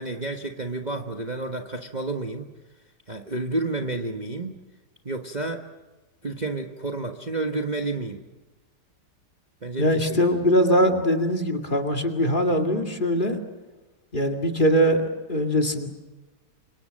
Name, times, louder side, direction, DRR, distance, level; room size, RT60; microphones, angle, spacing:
voice 1, 0.0-2.5 3.1-4.6 5.0-5.6 6.2-8.2 9.6-10.2, right 2 dB, 30° right, 4 dB, 1.3 m, -30 dB
voice 2, 9.8-13.4 14.1-15.9, equal, 30° left, 4 dB, 2.3 m, -22 dB
29.5 x 26.0 x 6.4 m, 1.2 s
omnidirectional pair, 1.8 m